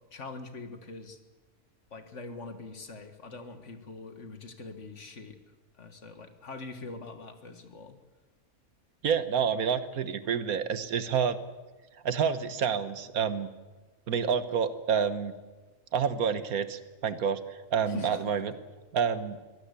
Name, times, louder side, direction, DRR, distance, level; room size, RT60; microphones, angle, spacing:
voice 1, 0.1-1.2 1.9-5.4 5.7-8.0 17.9-18.3, left 3 dB, 55° left, 8 dB, 2.1 m, -43 dB
voice 2, 9.0-11.4 12.0-13.5 14.1-15.3 15.9-18.5 18.9-19.4, right 7 dB, 75° right, 13 dB, 1.6 m, -28 dB
23.0 x 17.5 x 8.3 m, 1.2 s
omnidirectional pair, 1.5 m